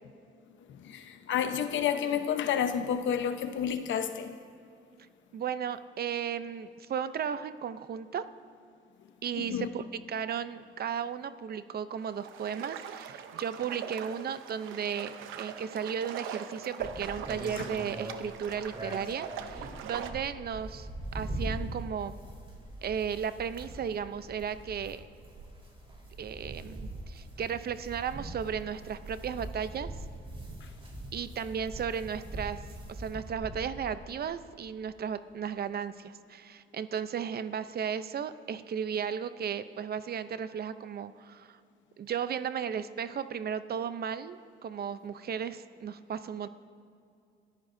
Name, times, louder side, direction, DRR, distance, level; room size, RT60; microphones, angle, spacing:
voice 1, 0.7-4.4 9.4-9.7 17.6-17.7 30.6-30.7, left 8 dB, 70° left, 1.0 m, -30 dB
voice 2, 5.3-8.2 9.2-20.9 21.1-22.2 22.8-25.1 26.2-26.8 27.1-29.9 31.1-32.6 32.9-41.6 42.0-46.5, right 7 dB, 50° right, 0.7 m, -35 dB
sound 1, 12.0-20.1, right 8 dB, 90° right, 0.8 m, -42 dB
sound 2, 16.8-34.0, right 1 dB, 30° right, 4.2 m, -42 dB
25.5 x 14.0 x 2.7 m
cardioid pair, 90°, 20 cm